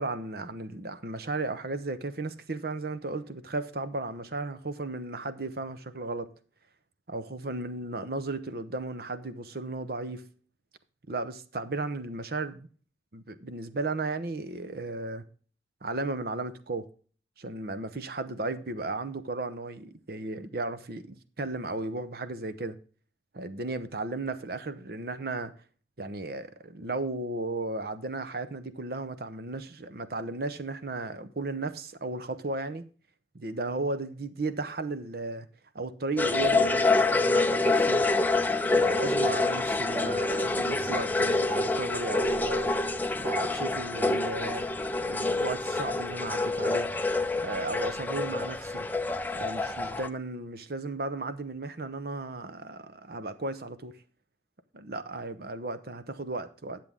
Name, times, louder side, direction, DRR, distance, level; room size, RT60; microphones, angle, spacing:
voice 1, 0.0-6.3 7.1-10.2 11.1-12.7 13.1-15.2 15.8-16.9 17.4-22.8 23.3-25.5 26.0-32.8 33.3-35.5 35.7-38.0 38.7-42.7 43.2-44.7 45.1-46.9 47.4-48.9 49.3-53.9 54.7-56.8, right 2 dB, 55° right, 0.8 m, -35 dB
sound 1, 36.2-50.1, left 2 dB, 10° left, 0.5 m, -27 dB
10.5 x 7.5 x 3.6 m
head